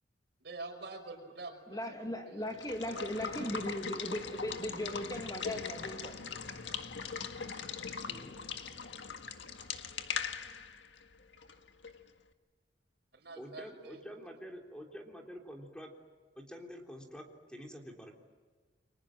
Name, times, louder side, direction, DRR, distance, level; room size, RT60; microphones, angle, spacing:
voice 1, 0.4-2.5 2.9-3.8 13.1-14.0, right 3 dB, 65° right, 5.3 m, -47 dB
voice 2, 1.7-6.1, left 1 dB, 20° left, 2.3 m, -38 dB
Water / Water tap faucet / Liquid, 2.5-12.1, left 6 dB, 80° left, 1.7 m, -41 dB
voice 3, 8.1-8.4 13.4-15.9 16.4-18.1, equal, 5° left, 3.5 m, -47 dB
29.5 x 24.0 x 7.7 m
head